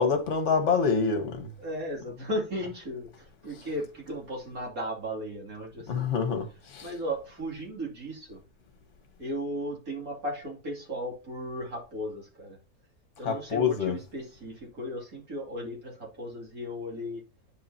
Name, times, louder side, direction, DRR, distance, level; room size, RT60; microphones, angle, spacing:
voice 1, 0.0-1.5 5.9-6.9 13.2-14.0, left 5 dB, 50° left, 1.5 m, -26 dB
voice 2, 1.6-6.2 6.8-8.4 9.2-12.6 13.2-17.2, equal, 60° right, 3.3 m, -36 dB
9.7 x 4.9 x 2.8 m
omnidirectional pair, 1.7 m